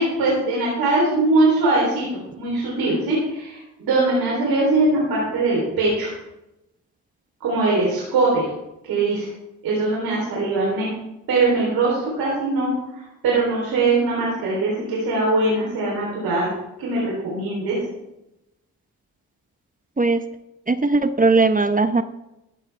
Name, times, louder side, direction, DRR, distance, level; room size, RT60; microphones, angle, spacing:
voice 1, 0.0-2.1 2.4-6.1 7.4-8.5 8.9-9.3 9.6-10.9 11.3-16.5 16.8-17.8, right 2 dB, 80° right, -4 dB, 3.6 m, -21 dB
voice 2, 20.7-22.0, right 3 dB, 25° right, 10 dB, 1.0 m, -18 dB
14.5 x 10.5 x 3.4 m, 0.91 s
hypercardioid pair, 40°, 36 cm